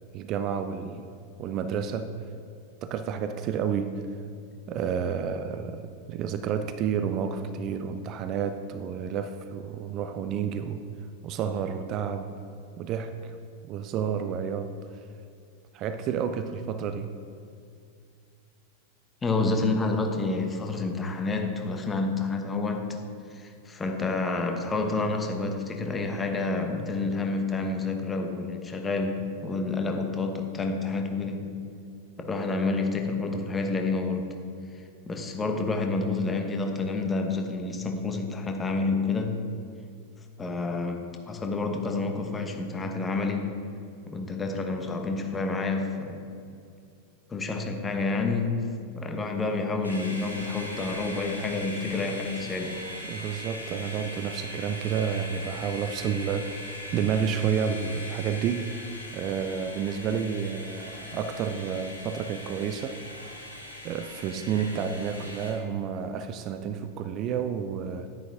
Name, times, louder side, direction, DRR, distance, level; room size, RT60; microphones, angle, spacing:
voice 1, 0.1-1.1 1.4-2.2 2.8-4.1 4.7-10.8 11.2-12.3 12.8-13.4 13.7-15.0 15.7-17.1 53.1-58.8 59.1-63.0 63.8-68.1, right 7 dB, 35° right, 9 dB, 0.5 m, -30 dB
voice 2, 19.2-23.0 23.3-31.5 32.2-34.3 35.1-39.4 40.4-43.5 44.1-46.2 47.3-48.6 49.0-52.8, left 3 dB, 15° left, 4 dB, 1.2 m, -29 dB
sound 1, 49.8-65.5, left 1 dB, 85° right, 2.3 m, -40 dB
11.0 x 10.5 x 3.6 m, 2.4 s
figure-of-eight pair, 90°, 0 cm